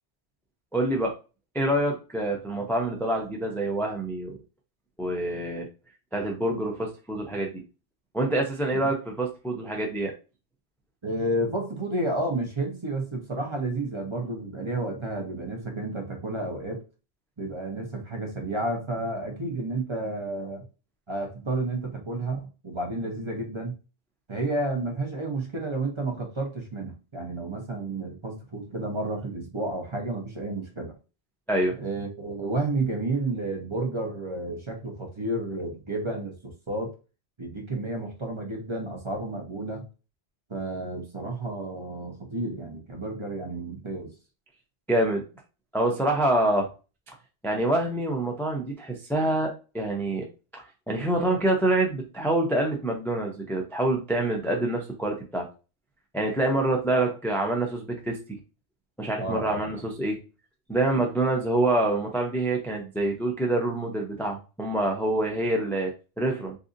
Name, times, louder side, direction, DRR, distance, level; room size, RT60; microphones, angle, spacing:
voice 1, 0.7-1.1 1.5-4.4 5.0-5.7 6.1-7.6 8.1-10.1 31.5-31.7 44.9-45.2 45.7-46.7 47.4-50.3 50.5-55.5 56.1-58.2 59.0-60.2 60.7-66.6, right 1 dB, 5° left, 1 dB, 0.4 m, -26 dB
voice 2, 11.0-16.8 17.4-20.7 21.1-23.7 24.3-30.9 31.8-36.9 37.4-39.8 40.5-44.1 56.9-57.0 59.2-59.7, right 2 dB, 30° right, 1 dB, 0.8 m, -31 dB
3.9 x 2.6 x 2.5 m, 0.31 s
omnidirectional pair, 1.1 m